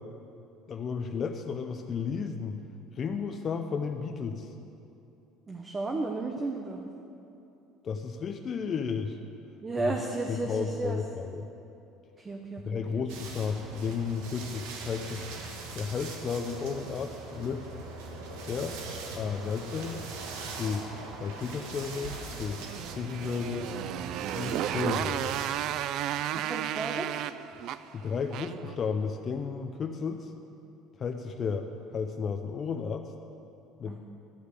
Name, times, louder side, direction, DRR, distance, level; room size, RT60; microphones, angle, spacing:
voice 1, 0.7-2.6 3.0-4.5 7.8-9.2 10.3-11.5 12.6-15.3 15.8-17.7 18.5-18.8 19.1-20.1 20.6-20.9 21.2-22.6 23.0-23.7 24.3-25.4 27.9-30.3 31.0-33.1 33.8-34.0, left 5 dB, 35° left, 5 dB, 0.5 m, -33 dB
voice 2, 5.5-6.8 9.6-11.0 12.2-13.0 26.3-27.1 33.9-34.0, right 2 dB, 20° right, 2 dB, 0.8 m, -33 dB
sound 1, 13.1-25.5, right 3 dB, 85° right, 1.4 m, -41 dB
Motorcycle, 22.4-28.7, right 11 dB, 60° right, 0.3 m, -33 dB
11.5 x 5.0 x 8.2 m, 2.8 s
cardioid pair, 125°, 0 cm